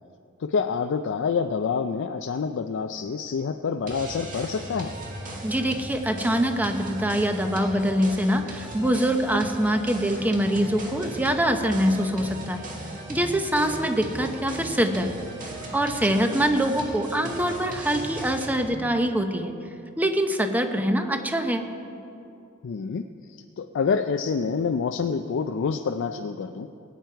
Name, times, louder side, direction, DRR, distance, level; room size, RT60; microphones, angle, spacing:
voice 1, 0.4-5.0 16.1-16.2 22.6-26.7, left 5 dB, 60° left, 7 dB, 0.4 m, -27 dB
sound 1, 3.9-18.6, right 1 dB, 40° right, 1.7 m, -37 dB
voice 2, 5.4-12.7 13.1-15.1 15.7-19.5 20.0-21.6, right 1 dB, 10° right, 6 dB, 0.7 m, -24 dB
19.5 x 9.3 x 4.6 m, 2.7 s
head